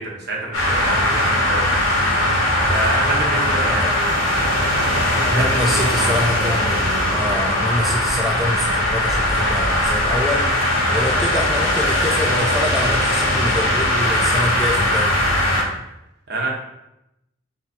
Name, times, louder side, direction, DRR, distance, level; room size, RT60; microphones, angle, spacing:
voice 1, 0.0-1.9 2.2-6.1 16.3-16.5, right 2 dB, 55° right, -2 dB, 1.0 m, -28 dB
sound 1, 0.5-15.6, left 1 dB, 85° left, 1.2 m, -19 dB
voice 2, 3.4-3.9 5.1-10.5 10.9-15.2, left 1 dB, ahead, -1 dB, 0.3 m, -26 dB
3.8 x 3.0 x 4.3 m, 0.88 s
head